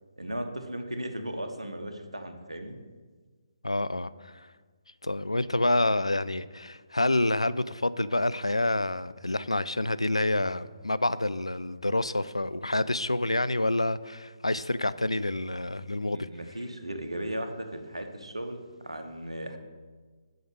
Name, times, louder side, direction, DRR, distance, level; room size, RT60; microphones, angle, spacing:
voice 1, 0.2-2.8 16.1-19.6, right 1 dB, 80° right, 1.0 m, -36 dB
voice 2, 3.6-4.5 5.0-16.3, left 2 dB, 85° left, 0.3 m, -28 dB
7.8 x 5.0 x 6.8 m
figure-of-eight pair, 140°, 3 cm